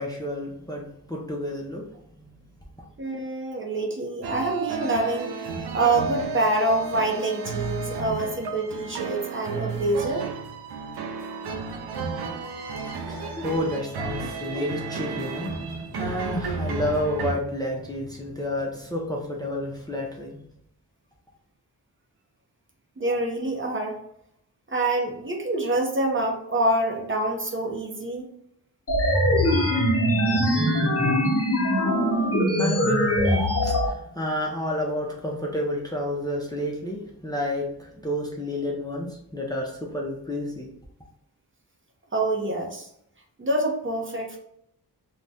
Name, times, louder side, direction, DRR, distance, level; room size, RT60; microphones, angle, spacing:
voice 1, 0.0-1.9 2.2-2.3 12.8-20.4 32.1-40.7, left 1 dB, 10° left, -2 dB, 0.5 m, -30 dB
voice 2, 3.0-5.3 5.7-10.2 23.0-24.0 24.7-28.2 30.3-30.5 42.1-42.9 43.4-44.4, right 2 dB, 30° right, 0 dB, 0.6 m, -26 dB
sound 1, 4.2-17.3, right 4 dB, 70° right, 0.5 m, -32 dB
sound 2, 28.9-33.9, equal, 35° left, 1.0 m, -22 dB
2.6 x 2.2 x 3.4 m, 0.73 s
wide cardioid pair, 90°, 40 cm